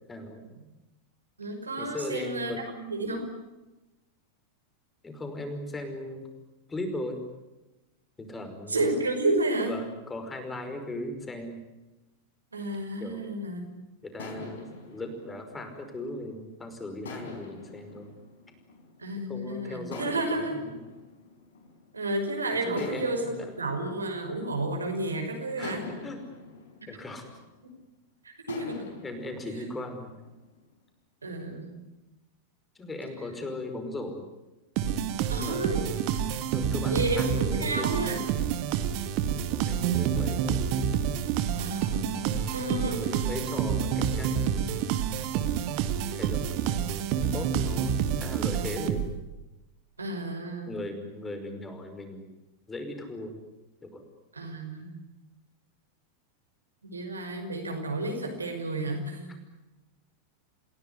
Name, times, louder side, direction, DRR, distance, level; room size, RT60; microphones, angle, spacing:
voice 1, 0.1-0.4 1.8-2.6 5.0-6.3 6.7-7.3 8.2-8.9 9.7-11.6 13.0-13.2 14.0-18.1 19.3-20.8 22.6-23.5 25.6-25.8 26.0-26.2 26.9-27.3 29.0-30.2 32.8-34.3 35.4-35.6 36.5-38.1 39.5-40.7 42.9-44.7 46.1-46.9 47.3-49.1 50.7-52.2 52.7-53.4 53.8-54.0, left 2 dB, 15° left, 6 dB, 5.2 m, -38 dB
voice 2, 1.4-3.2 8.7-9.8 12.5-13.7 19.0-20.6 21.9-25.9 27.6-27.7 28.5-28.9 31.2-31.7 35.3-35.8 36.9-38.2 41.6-43.1 50.0-50.7 54.4-55.0 56.8-59.3, right 2 dB, 75° right, 3 dB, 5.6 m, -31 dB
sound 1, 13.0-13.6 14.2-16.5 17.1-19.2 19.9-22.2 22.8-25.0 25.6-27.9 28.5-30.7, left 4 dB, 65° left, 4.8 m, -45 dB
sound 2, 34.8-49.3, right 8 dB, 45° right, 2.0 m, -28 dB
29.5 x 17.0 x 9.7 m, 1.0 s
figure-of-eight pair, 90°, 0 cm